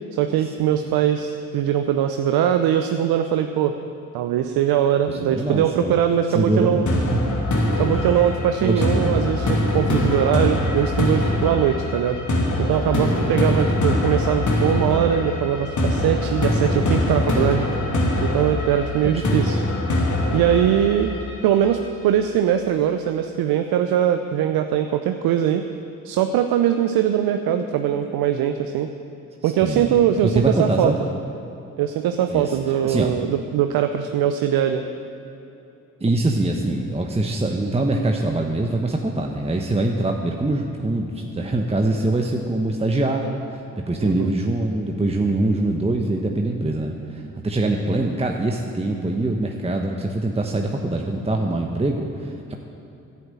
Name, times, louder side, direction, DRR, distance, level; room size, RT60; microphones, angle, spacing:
voice 1, 0.1-3.7 4.1-6.9 7.8-12.2 12.6-17.7 18.2-19.6 20.3-21.1 21.4-25.6 26.0-28.9 29.4-30.9 31.8-34.9 44.0-44.3, right 10 dB, 65° right, 7 dB, 0.8 m, -21 dB
voice 2, 5.1-5.9 6.3-7.2 7.9-8.2 8.6-9.3 13.0-13.4 19.0-19.5 29.4-30.0 30.2-31.0 32.3-32.6 32.8-33.1 36.0-43.4 43.9-52.6, right 2 dB, 15° right, 2 dB, 1.2 m, -24 dB
sound 1, 6.9-21.8, left 1 dB, 45° left, 2.7 m, -23 dB
11.0 x 8.5 x 8.9 m, 2.9 s
hypercardioid pair, 50°, 40 cm